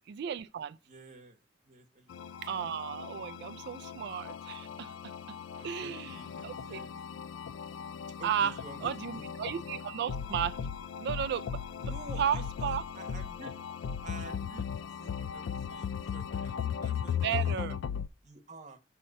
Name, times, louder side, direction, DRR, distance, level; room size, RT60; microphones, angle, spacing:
voice 1, 0.1-0.8 2.4-5.4 5.6-6.2 6.4-6.8 8.2-8.6 8.8-10.6 11.0-11.6 12.2-12.8 17.0-17.8, right 8 dB, 60° right, 0.3 m, -34 dB
voice 2, 0.9-2.4 5.5-6.9 8.2-9.7 11.8-13.6 14.0-17.5 18.2-18.8, right 2 dB, 40° right, 1.1 m, -50 dB
sound 1, 2.1-18.1, left 7 dB, 90° left, 0.3 m, -37 dB
6.4 x 2.9 x 5.3 m
head